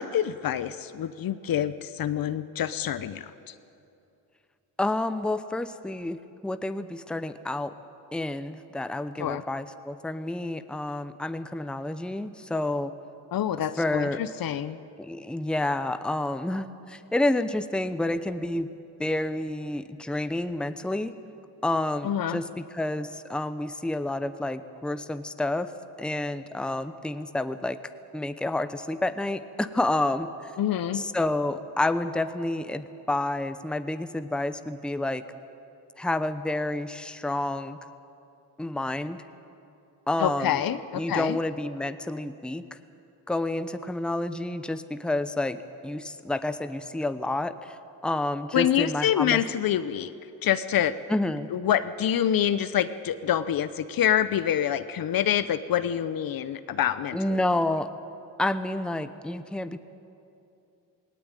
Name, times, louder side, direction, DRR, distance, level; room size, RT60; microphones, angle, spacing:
voice 1, 0.0-3.5 9.2-9.4 13.3-14.8 22.0-22.4 30.6-31.0 40.2-41.4 48.5-50.1 50.4-50.9 51.5-57.4, left 10 dB, 55° left, 13 dB, 0.9 m, -26 dB
voice 2, 4.8-6.2 6.4-7.7 8.1-12.9 13.8-14.2 15.0-18.7 19.0-21.1 21.6-25.7 26.0-27.8 28.1-30.3 30.9-35.2 36.0-37.8 38.6-39.2 40.1-40.6 41.0-42.6 43.3-47.8 48.0-49.4 51.1-51.5 57.1-57.9 58.4-59.8, left 2 dB, ahead, 11 dB, 0.8 m, -29 dB
18.5 x 18.0 x 9.1 m, 2.7 s
cardioid pair, 85°, 41 cm